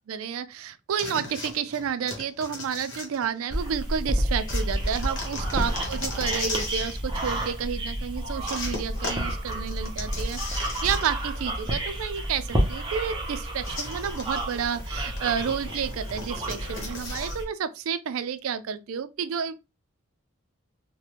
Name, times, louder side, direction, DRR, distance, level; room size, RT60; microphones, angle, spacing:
voice 1, 0.1-19.5, right 7 dB, 85° right, 0.4 m, -31 dB
sound 1, 1.0-3.7 4.5-7.0 8.5-11.4 11.7-11.8 13.6-17.4, left 2 dB, 60° left, 1.0 m, -37 dB
sound 2, 3.5-17.4, right 1 dB, 20° right, 0.6 m, -30 dB
3.2 x 2.1 x 2.9 m
head